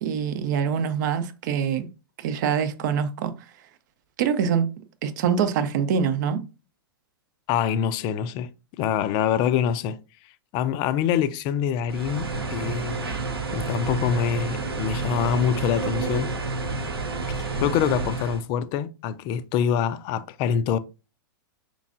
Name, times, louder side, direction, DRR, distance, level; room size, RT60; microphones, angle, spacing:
voice 1, 0.0-1.9 2.2-3.3 4.2-4.7 5.0-6.4, right 7 dB, 55° right, 0.7 m, -24 dB
voice 2, 7.5-8.5 8.8-10.0 10.5-13.1 13.5-16.3 17.6-20.8, left 8 dB, 35° left, 0.4 m, -25 dB
sound 1, 11.9-18.4, right 3 dB, 85° right, 0.8 m, -29 dB
5.1 x 3.1 x 2.5 m
figure-of-eight pair, 105°, 12 cm